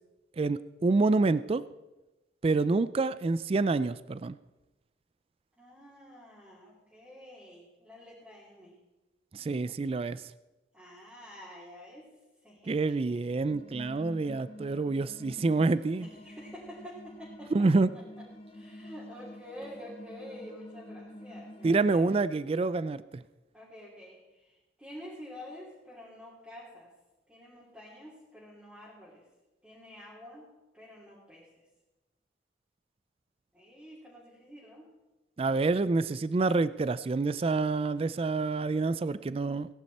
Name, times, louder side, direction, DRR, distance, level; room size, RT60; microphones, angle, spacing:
voice 1, 0.4-1.6 2.4-4.4 9.3-10.2 12.7-16.1 17.5-17.9 21.6-23.2 35.4-39.7, right 3 dB, 30° right, 16 dB, 0.3 m, -27 dB
voice 2, 5.6-8.7 10.7-12.0 12.4-13.2 16.0-17.5 17.9-18.2 18.5-22.1 23.5-26.9 27.3-29.2 29.6-30.5 30.7-31.6 33.5-34.9, equal, 5° right, -8 dB, 3.4 m, -48 dB
sound 1, 13.5-22.0, left 1 dB, 30° left, 1.5 m, -48 dB
18.0 x 10.5 x 4.2 m, 1.1 s
head